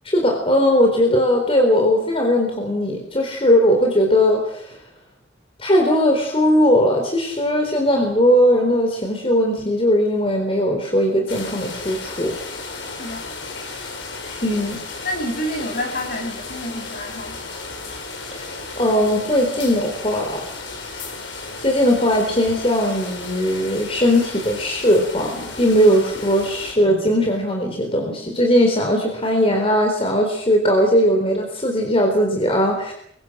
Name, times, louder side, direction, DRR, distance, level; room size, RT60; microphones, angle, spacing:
voice 1, 0.0-4.8 5.6-12.4 14.4-14.8 18.3-18.5 18.8-20.5 21.6-32.9, equal, 30° left, 2 dB, 4.0 m, -19 dB
sound 1, 11.3-26.7, left 3 dB, 75° left, 4.9 m, -34 dB
voice 2, 13.0-13.3 15.0-17.4, equal, 50° left, 3 dB, 6.3 m, -28 dB
26.0 x 23.5 x 6.5 m, 0.70 s
head